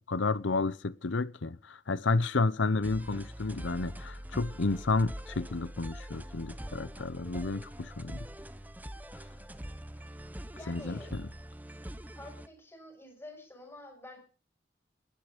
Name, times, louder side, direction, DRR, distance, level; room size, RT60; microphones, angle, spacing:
voice 1, 0.1-8.3 10.7-11.2, left 3 dB, 90° left, 0.8 m, -31 dB
sound 1, 2.8-12.5, equal, 10° right, 1.2 m, -44 dB
voice 2, 10.5-11.2 12.1-14.2, left 1 dB, 15° left, 6.3 m, -48 dB
20.5 x 11.0 x 5.1 m
head